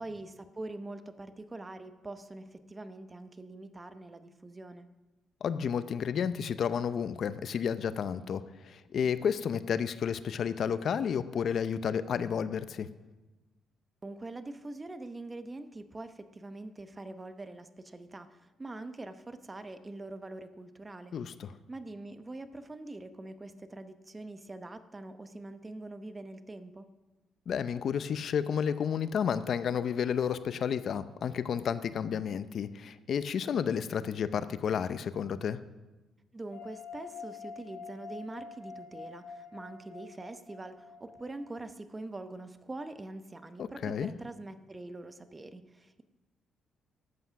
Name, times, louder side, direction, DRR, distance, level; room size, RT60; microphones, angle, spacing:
voice 1, 0.0-4.9 14.0-21.1 21.7-26.9 36.3-46.0, right 2 dB, 20° right, 10 dB, 0.9 m, -44 dB
voice 2, 5.4-12.9 21.1-21.5 27.5-35.6 43.6-44.1, left 7 dB, 60° left, 14 dB, 0.5 m, -31 dB
sound 1, 36.5-41.7, left 5 dB, 85° left, 1.9 m, -47 dB
12.5 x 8.2 x 5.8 m, 1.2 s
cardioid pair, 90°, 0 cm